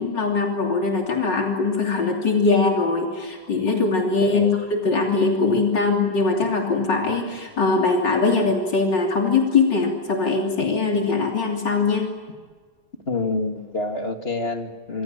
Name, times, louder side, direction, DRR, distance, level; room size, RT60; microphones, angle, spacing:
voice 1, 0.0-12.1, left 4 dB, 80° left, 0 dB, 3.8 m, -21 dB
voice 2, 13.1-15.0, left 3 dB, 35° left, 4 dB, 2.4 m, -27 dB
27.0 x 26.5 x 7.5 m, 1.5 s
omnidirectional pair, 1.9 m